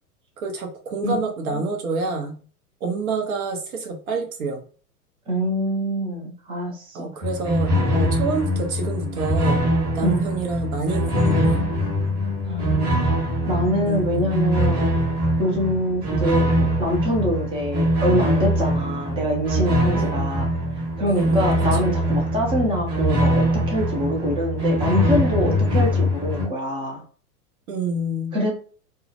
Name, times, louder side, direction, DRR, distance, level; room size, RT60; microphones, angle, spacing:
voice 1, 0.4-2.4 2.8-4.6 6.9-9.6 9.9-11.6 13.8-14.3 19.9-20.2 21.1-21.5 21.8-22.0 27.7-28.4, right 2 dB, 65° right, 3 dB, 0.9 m, -27 dB
voice 2, 5.3-7.1 10.0-10.2 12.4-13.0 13.5-14.8 15.4-20.5 21.0-27.0 28.3-28.5, equal, 15° right, 1 dB, 0.4 m, -25 dB
sound 1, 7.2-26.5, equal, 35° right, 1.1 m, -22 dB
2.3 x 2.0 x 2.7 m, 0.41 s
hypercardioid pair, 105°, 46 cm